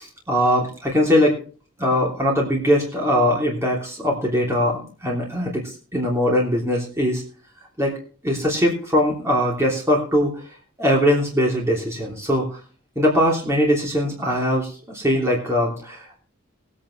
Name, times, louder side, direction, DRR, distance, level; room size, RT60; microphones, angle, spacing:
voice 1, 0.0-1.4 1.8-7.2 7.8-7.9 8.2-10.4 10.8-12.6 12.9-16.2, equal, 15° right, -2 dB, 3.1 m, -21 dB
21.0 x 8.7 x 3.2 m, 0.40 s
head